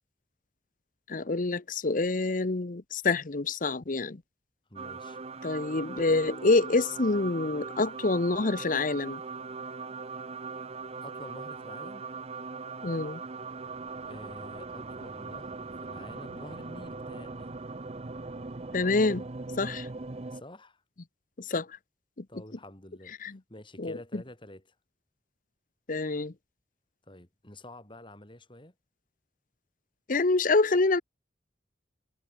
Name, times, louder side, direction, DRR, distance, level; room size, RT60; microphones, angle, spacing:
voice 1, 1.1-4.2 5.4-9.2 12.8-13.2 18.7-19.3 19.6-19.9 21.4-21.7 22.2-22.3 23.2-23.4 23.8-24.2 25.9-26.3 30.1-31.0, left 3 dB, 50° left, 0.9 m, -27 dB
voice 2, 4.7-5.2 11.0-12.0 14.0-17.5 20.3-20.8 22.3-24.7 27.1-28.7, left 1 dB, 30° left, 5.4 m, -48 dB
sound 1, 4.8-20.4, right 4 dB, 35° right, 0.8 m, -40 dB
head